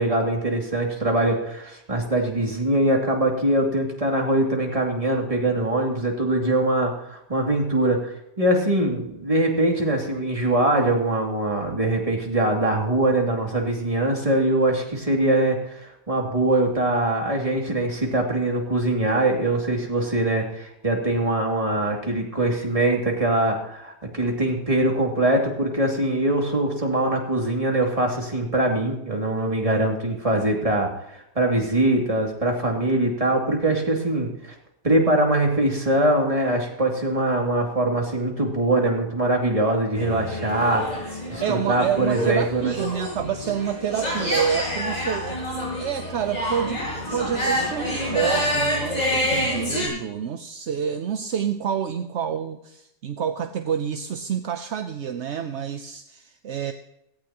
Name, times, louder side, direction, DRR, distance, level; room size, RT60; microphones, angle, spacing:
voice 1, 0.0-34.5 34.8-42.8, right 1 dB, 20° right, 0 dB, 2.6 m, -23 dB
sound 1, 39.9-49.9, equal, 25° left, 6.1 m, -27 dB
voice 2, 41.4-45.4 45.8-56.7, right 8 dB, 55° right, 8 dB, 0.8 m, -28 dB
17.0 x 15.5 x 3.0 m, 0.80 s
omnidirectional pair, 1.8 m